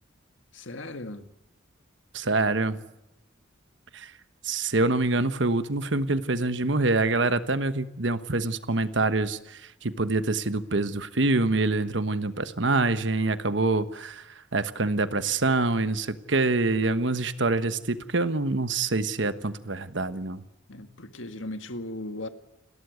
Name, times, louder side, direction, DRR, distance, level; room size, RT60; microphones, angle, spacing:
voice 1, 0.5-1.2 20.7-22.3, left 1 dB, 80° left, 1.9 m, -37 dB
voice 2, 2.1-2.8 3.9-4.1 4.4-20.4, right 3 dB, 70° right, 1.2 m, -26 dB
30.0 x 13.0 x 9.5 m
head